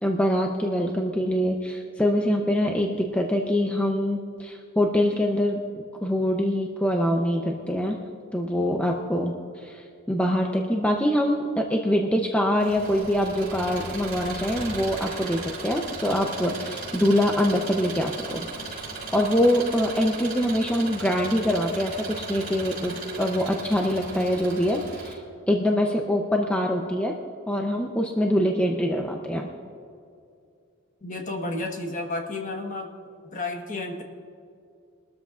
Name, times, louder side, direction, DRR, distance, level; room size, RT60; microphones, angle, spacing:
voice 1, 0.0-5.6 6.0-8.0 8.3-9.3 9.6-18.9 19.1-25.2 25.5-27.1 27.5-29.5, equal, 5° left, 0 dB, 0.7 m, -24 dB
Engine, 12.6-25.1, right 3 dB, 45° right, 3.8 m, -37 dB
voice 2, 31.0-32.9 33.3-34.0, left 2 dB, 35° left, 2 dB, 1.4 m, -31 dB
22.5 x 13.0 x 2.5 m, 2.4 s
head